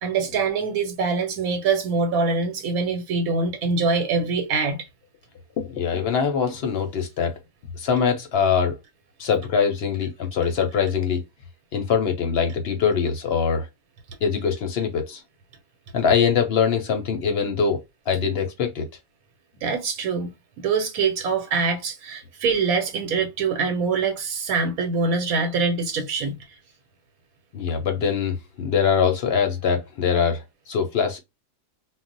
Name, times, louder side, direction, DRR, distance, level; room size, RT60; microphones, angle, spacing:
voice 1, 0.0-4.8 19.6-20.3 20.6-26.4, right 4 dB, 85° right, 1.1 m, -24 dB
voice 2, 5.6-7.3 7.8-8.8 9.2-11.2 11.7-13.7 14.2-15.2 15.9-18.9 27.5-31.2, left 6 dB, 60° left, 0.7 m, -23 dB
2.3 x 2.0 x 3.8 m
omnidirectional pair, 1.5 m